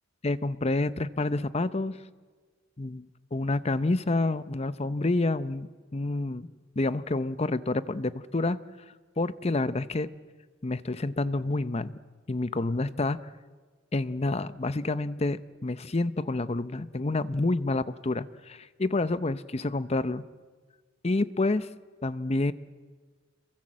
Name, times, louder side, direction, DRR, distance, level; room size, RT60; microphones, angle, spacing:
voice 1, 0.2-2.0 2.8-6.5 6.8-8.6 9.2-10.1 10.6-11.9 12.3-13.2 13.9-20.2 21.0-21.7 22.0-22.5, left 2 dB, 30° left, 14 dB, 0.7 m, -28 dB
27.0 x 22.5 x 7.5 m, 1.4 s
head